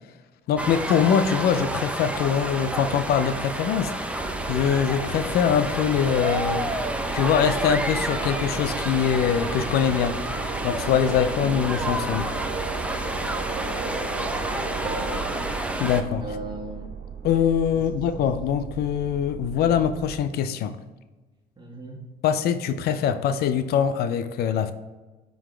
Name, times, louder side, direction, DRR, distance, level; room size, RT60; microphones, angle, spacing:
voice 1, 0.5-4.2 4.5-6.7 7.1-10.2 10.6-12.3 15.8-16.4 17.2-20.8 22.2-24.7, left 8 dB, 70° left, 0.5 m, -23 dB
sound 1, 0.6-16.0, right 1 dB, 5° right, 0.6 m, -30 dB
sound 2, 4.2-20.2, right 5 dB, 65° right, 1.2 m, -36 dB
voice 2, 11.4-11.7 13.5-15.2 16.2-16.9 17.7-18.1 21.6-22.0, right 2 dB, 25° right, 1.8 m, -38 dB
9.7 x 4.0 x 3.3 m
cardioid pair, 110°, 17 cm